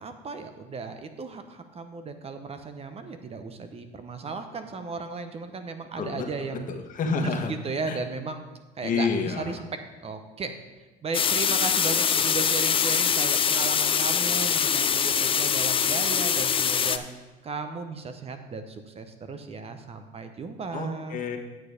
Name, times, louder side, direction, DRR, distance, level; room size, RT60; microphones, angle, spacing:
voice 1, 0.0-6.7 7.1-8.4 8.8-9.6 10.0-10.5 11.0-17.0 17.4-21.2, right 4 dB, 35° right, 8 dB, 0.9 m, -35 dB
voice 2, 6.7-7.5 7.8-8.0 8.8-9.6 20.7-21.4, left 5 dB, 50° left, 3 dB, 1.4 m, -29 dB
sound 1, 11.1-17.0, left 7 dB, 30° left, 0.5 m, -23 dB
9.5 x 6.5 x 5.1 m, 1.1 s
supercardioid pair, 95°, 18 cm